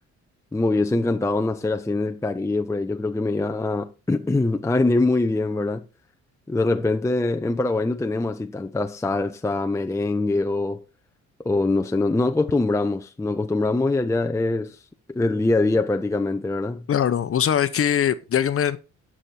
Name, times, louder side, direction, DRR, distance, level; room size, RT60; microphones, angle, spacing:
voice 1, 0.5-5.8 6.5-10.8 11.4-14.8 15.1-16.8, left 2 dB, 10° left, 0.6 m, -23 dB
voice 2, 16.9-18.8, left 9 dB, 50° left, 0.9 m, -21 dB
11.5 x 6.3 x 4.3 m
cardioid pair, 90°, 30 cm